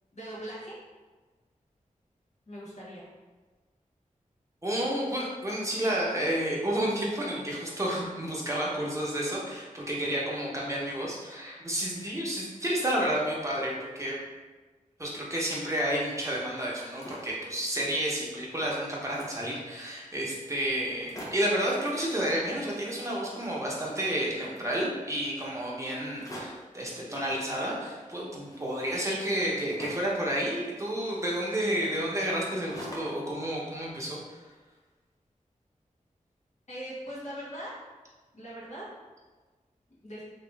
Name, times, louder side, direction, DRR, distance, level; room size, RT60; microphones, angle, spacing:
voice 1, 0.1-0.8 2.5-3.1 36.7-37.7 38.3-38.8 40.0-40.2, equal, 55° left, -7 dB, 1.4 m, -40 dB
voice 2, 4.6-14.2 15.0-34.4, right 1 dB, 20° right, -4 dB, 0.9 m, -31 dB
sound 1, 16.7-17.5 17.9-18.0 18.3-19.5 20.1-20.2 20.5-20.6 20.9-21.6 22.4-23.1 23.4-24.7 26.1-26.8 27.7-30.2 31.0-33.3 33.6-34.6, equal, 25° left, 0.8 m, -47 dB
3.0 x 2.8 x 3.4 m, 1.3 s
wide cardioid pair, 65°, 14 cm